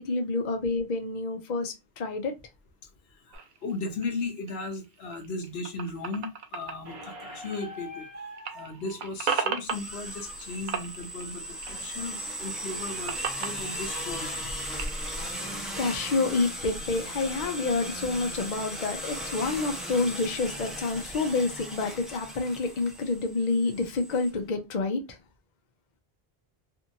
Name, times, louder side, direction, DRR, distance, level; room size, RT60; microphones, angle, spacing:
voice 1, 0.0-2.3 15.4-25.2, left 3 dB, 50° left, 0.7 m, -28 dB
voice 2, 3.3-6.3 6.5-8.1 8.5-14.5, left 3 dB, 80° left, 1.0 m, -36 dB
sound 1, 3.3-8.1 8.3-10.4 10.7-12.1 12.5-15.1, right 6 dB, 60° right, 0.7 m, -36 dB
Squeak, 6.8-11.9, equal, 35° right, 1.0 m, -46 dB
sound 2, 9.6-24.3, equal, ahead, 0.7 m, -37 dB
2.8 x 2.6 x 2.5 m
omnidirectional pair, 1.0 m